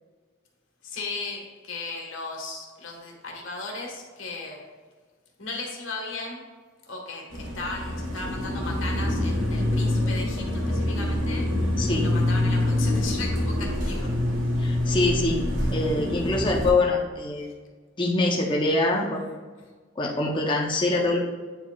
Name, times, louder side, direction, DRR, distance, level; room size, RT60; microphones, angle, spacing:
voice 1, 0.8-4.6 5.4-6.4 6.9-11.5 12.0-14.1, left 3 dB, 85° left, 0 dB, 1.4 m, -36 dB
sound 1, 7.3-16.7, left 1 dB, 80° right, 1.3 m, -26 dB
voice 2, 14.6-17.5 18.0-19.3 20.0-21.3, left 2 dB, 25° left, -1 dB, 0.6 m, -24 dB
9.0 x 4.8 x 2.3 m, 1.4 s
head